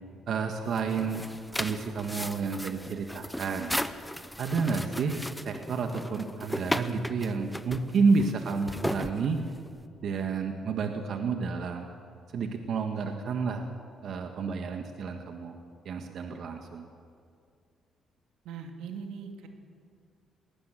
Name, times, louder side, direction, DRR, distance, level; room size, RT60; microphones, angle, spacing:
voice 1, 0.3-1.2 1.6-3.7 4.4-9.4 10.0-11.9 12.3-13.6 14.0-15.6 15.9-16.9, right 5 dB, 65° right, 5 dB, 1.7 m, -30 dB
sound 1, 0.7-9.8, left 1 dB, 5° left, 0.9 m, -36 dB
voice 2, 18.4-19.5, right 6 dB, 90° right, 4 dB, 2.3 m, -41 dB
19.5 x 19.0 x 7.7 m, 2.3 s
cardioid pair, 90°, 0 cm